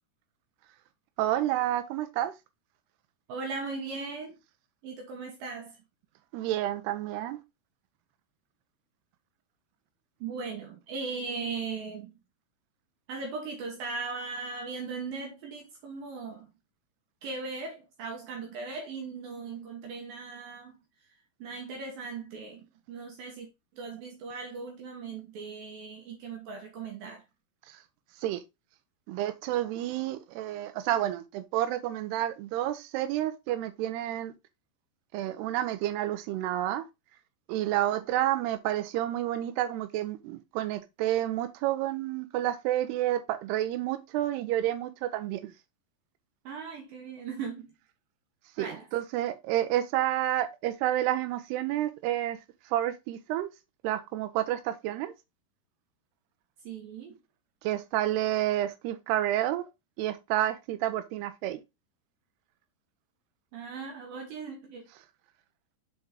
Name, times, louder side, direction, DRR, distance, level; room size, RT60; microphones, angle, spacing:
voice 1, 1.2-2.3 6.3-7.4 28.2-28.4 29.1-34.3 35.1-36.9 37.5-45.5 48.6-52.4 52.7-53.5 53.8-55.1 57.6-59.6 60.0-61.6, right 13 dB, 85° right, 2.7 m, -30 dB
voice 2, 3.3-4.4 4.8-5.8 10.2-12.1 13.1-16.5 17.2-20.7 21.4-23.5 23.7-27.2 46.4-47.7 48.6-48.9 56.6-57.2 63.5-64.9, right 4 dB, 70° right, 2.7 m, -38 dB
6.8 x 4.7 x 3.6 m
omnidirectional pair, 4.7 m